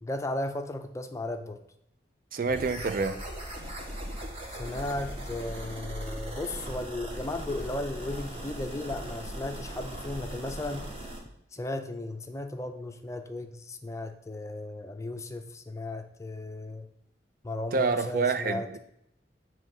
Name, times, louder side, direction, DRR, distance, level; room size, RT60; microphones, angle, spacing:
voice 1, 0.0-1.6 4.5-10.9 11.5-16.9 17.4-18.7, left 2 dB, 15° left, 0.4 m, -35 dB
voice 2, 2.3-3.2 17.7-18.8, right 4 dB, 50° right, 0.4 m, -27 dB
sound 1, 2.5-11.2, equal, 35° right, 1.3 m, -39 dB
7.6 x 3.2 x 5.3 m
head